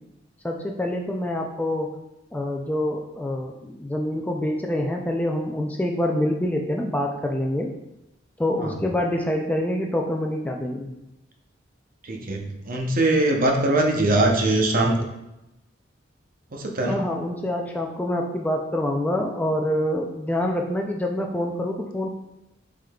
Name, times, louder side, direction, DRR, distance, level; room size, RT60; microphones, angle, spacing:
voice 1, 0.4-2.0 2.3-7.7 8.4-10.9 16.9-22.1, left 1 dB, 10° left, 1 dB, 0.3 m, -26 dB
voice 2, 12.0-15.0 16.5-17.0, right 2 dB, 45° right, 1 dB, 0.7 m, -21 dB
6.2 x 3.7 x 2.3 m, 0.91 s
head